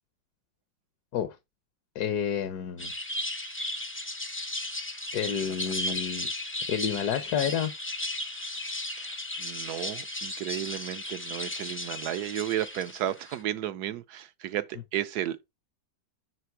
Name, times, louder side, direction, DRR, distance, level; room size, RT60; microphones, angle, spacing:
voice 1, 1.9-2.9 5.1-6.3 6.7-7.7, left 8 dB, 65° left, 1.4 m, -29 dB
sound 1, 2.8-13.4, left 1 dB, 15° left, 0.4 m, -35 dB
voice 2, 5.6-6.0 9.0-9.1 9.4-15.5, right 12 dB, 70° right, 1.1 m, -33 dB
9.5 x 3.3 x 4.5 m
omnidirectional pair, 1.9 m